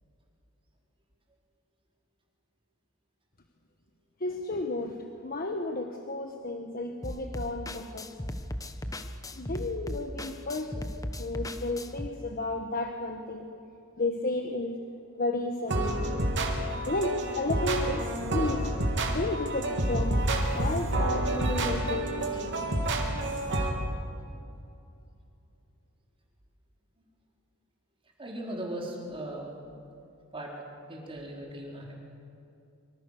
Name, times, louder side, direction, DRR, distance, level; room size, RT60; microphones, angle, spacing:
voice 1, 4.2-8.1 9.3-10.9 11.2-13.5 14.0-14.8 15.2-16.2 16.8-18.1 18.3-18.7 19.1-20.3 20.5-22.5, left 2 dB, 45° left, 4 dB, 1.5 m, -33 dB
sound 1, 7.0-12.1, left 1 dB, 15° left, 1.2 m, -37 dB
sound 2, 15.7-23.7, right 1 dB, 60° right, 3.4 m, -29 dB
voice 2, 28.2-29.5 30.3-30.5 30.9-31.9, right 1 dB, 25° right, -1 dB, 4.2 m, -38 dB
25.5 x 25.5 x 6.7 m, 2.6 s
head